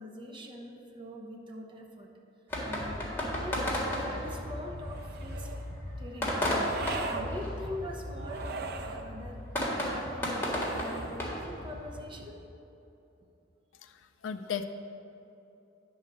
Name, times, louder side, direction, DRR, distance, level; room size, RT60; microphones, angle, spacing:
voice 1, 0.0-2.1 2.6-3.7 4.0-5.6 6.0-6.5 7.0-9.4 9.9-12.5, left 1 dB, 25° right, 0 dB, 0.8 m, -43 dB
sound 1, 2.5-12.0, equal, 10° left, 1.7 m, -34 dB
sound 2, 4.8-5.7 6.6-7.3 8.2-9.1 10.4-11.2, right 4 dB, 55° right, 0.5 m, -40 dB
voice 2, 13.7-14.7, left 7 dB, 75° left, 9 dB, 0.4 m, -36 dB
9.9 x 3.9 x 6.2 m, 2.9 s
head